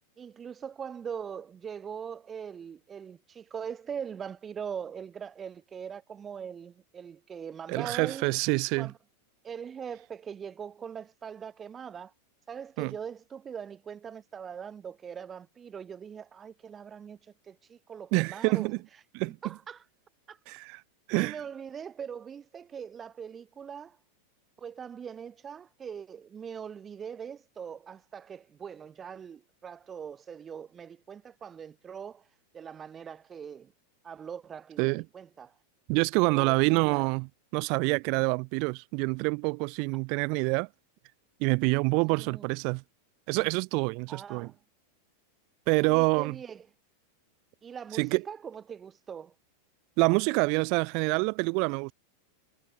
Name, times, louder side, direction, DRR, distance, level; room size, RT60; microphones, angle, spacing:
voice 1, 0.2-8.3 8.8-8.9 9.4-12.1 12.5-18.7 19.2-19.8 20.3-20.4 21.1-24.0 24.6-32.3 32.5-33.7 34.0-35.6 36.1-37.1 42.0-42.5 44.1-44.6 45.9-46.7 47.6-49.3, right 7 dB, 20° right, 2.4 m, -41 dB
voice 2, 7.7-8.9 12.8-12.9 18.1-18.8 19.1-19.3 20.5-20.8 21.1-21.3 34.8-35.0 35.9-37.3 37.5-40.7 41.4-42.8 43.3-44.5 45.7-46.4 48.0-48.2 50.0-51.9, right 34 dB, 45° right, 0.4 m, -26 dB
figure-of-eight pair, 90°, 0 cm